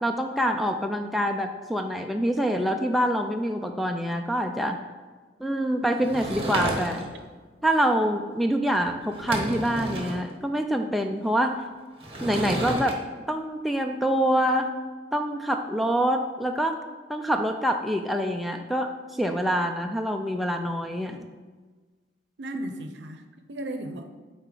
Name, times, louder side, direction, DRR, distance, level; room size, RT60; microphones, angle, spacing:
voice 1, 0.0-4.8 5.4-7.1 7.6-11.6 12.2-13.0 13.3-14.7 15.1-16.8 17.1-21.3, equal, ahead, 3 dB, 0.3 m, -26 dB
Sliding door / Wood, 6.0-7.2 8.7-8.8 9.1-10.2 12.0-12.9, right 1 dB, 35° right, 1.0 m, -31 dB
voice 2, 22.4-24.1, right 1 dB, 80° right, 7 dB, 0.6 m, -35 dB
7.9 x 4.2 x 3.8 m, 1.4 s
head